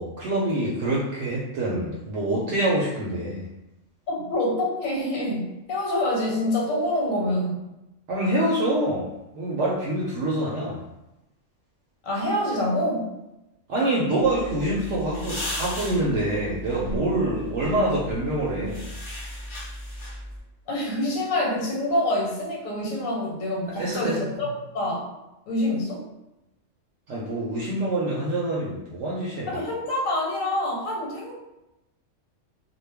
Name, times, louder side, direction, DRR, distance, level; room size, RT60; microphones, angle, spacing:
voice 1, 0.0-3.5 8.1-10.8 13.7-18.9 23.8-24.3 27.1-29.6, right 1 dB, 70° right, -4 dB, 0.8 m, -26 dB
voice 2, 4.1-7.7 12.0-13.1 20.7-24.5 24.7-25.0 25.5-26.0 29.5-31.3, left 1 dB, 90° left, -2 dB, 1.2 m, -26 dB
sound 1, 14.2-20.4, left 1 dB, 30° left, 0.6 m, -36 dB
2.3 x 2.1 x 3.3 m, 0.95 s
omnidirectional pair, 1.3 m